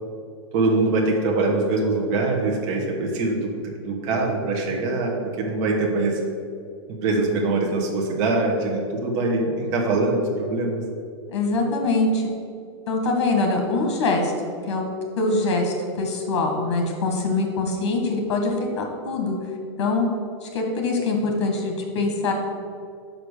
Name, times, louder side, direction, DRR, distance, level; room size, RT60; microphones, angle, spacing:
voice 1, 0.5-6.2 6.9-10.8, right 2 dB, 35° right, 0 dB, 1.2 m, -23 dB
voice 2, 11.3-12.3 12.9-14.3 14.7-14.9 15.2-19.4 19.8-20.1 20.4-22.3, left 3 dB, 70° left, 2 dB, 1.8 m, -23 dB
5.8 x 5.1 x 6.3 m, 2.4 s
supercardioid pair, 160°, 15 cm